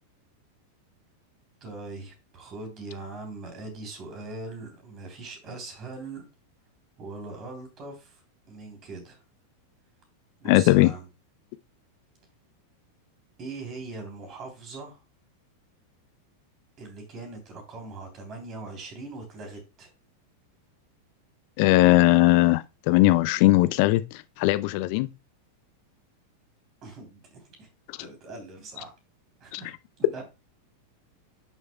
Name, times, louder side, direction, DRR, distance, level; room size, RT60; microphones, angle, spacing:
voice 1, 1.6-6.3 7.0-8.2 8.5-9.2 10.4-11.1 13.4-15.0 16.8-19.9 26.8-27.7 28.0-28.9 29.4-29.7 30.0-30.2, right 3 dB, 30° right, 3.2 m, -41 dB
voice 2, 10.5-10.9 21.6-25.1 29.5-29.6, left 19 dB, 45° left, 0.5 m, -19 dB
11.0 x 6.4 x 2.2 m
figure-of-eight pair, 90°, 0 cm